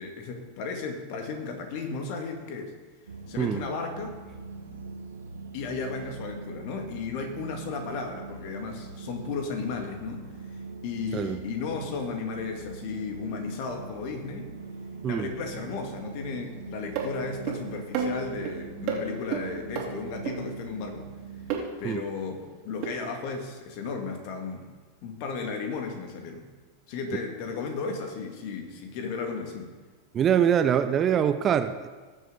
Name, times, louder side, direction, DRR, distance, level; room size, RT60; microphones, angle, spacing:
voice 1, 0.0-2.7 3.3-4.1 5.5-10.3 10.8-14.5 15.0-21.1 21.8-24.7 25.0-26.5 26.9-29.7, left 4 dB, 55° left, 4 dB, 2.0 m, -34 dB
sound 1, 3.1-21.6, right 4 dB, 85° right, 1.3 m, -42 dB
sound 2, 17.0-17.1 17.5-17.6 17.9-18.5 18.9-19.0 19.3-19.4 19.8-19.9 20.3-20.4 21.5-21.6 22.8-22.9, right 7 dB, 50° right, 2.6 m, -29 dB
voice 2, 30.1-31.9, right 9 dB, 30° right, 10 dB, 0.6 m, -24 dB
19.5 x 6.8 x 3.9 m, 1.4 s
hypercardioid pair, 95°, 0 cm